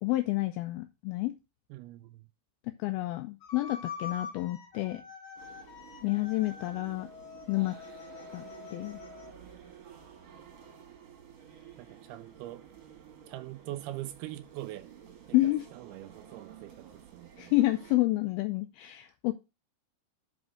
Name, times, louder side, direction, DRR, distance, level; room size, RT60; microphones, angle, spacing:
voice 1, 0.0-1.3 2.7-5.0 6.0-7.1 7.5-7.8 8.3-8.4 8.7-9.0 15.3-15.7 17.4-19.3, left 18 dB, 85° left, 2.3 m, -29 dB
voice 2, 1.7-2.2 11.8-12.6 13.3-14.9 15.3-17.6, right 15 dB, 80° right, 2.4 m, -43 dB
sound 1, 3.4-9.3, left 5 dB, 50° left, 2.5 m, -45 dB
sound 2, 5.4-18.0, right 8 dB, 50° right, 2.3 m, -52 dB
6.2 x 5.4 x 6.3 m
omnidirectional pair, 4.8 m